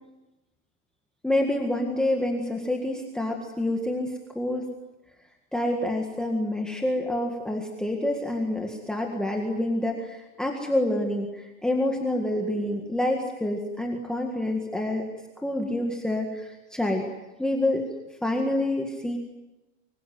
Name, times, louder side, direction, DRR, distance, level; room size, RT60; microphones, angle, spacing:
voice 1, 1.2-4.7 5.5-15.1 15.4-17.1 17.4-17.8 18.2-19.2, left 1 dB, ahead, 0 dB, 1.8 m, -27 dB
25.0 x 24.5 x 9.4 m, 1.0 s
supercardioid pair, 170°, 40 cm